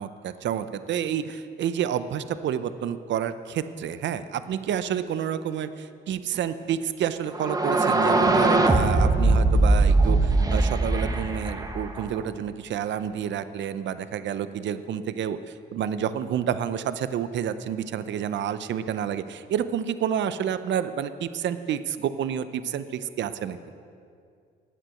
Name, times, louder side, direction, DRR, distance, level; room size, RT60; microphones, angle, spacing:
voice 1, 0.0-23.6, right 9 dB, 65° right, 12 dB, 0.6 m, -29 dB
sound 1, 7.3-12.2, right 2 dB, 20° right, 1.0 m, -21 dB
12.5 x 9.1 x 6.4 m, 2.3 s
cardioid pair, 90°, 20 cm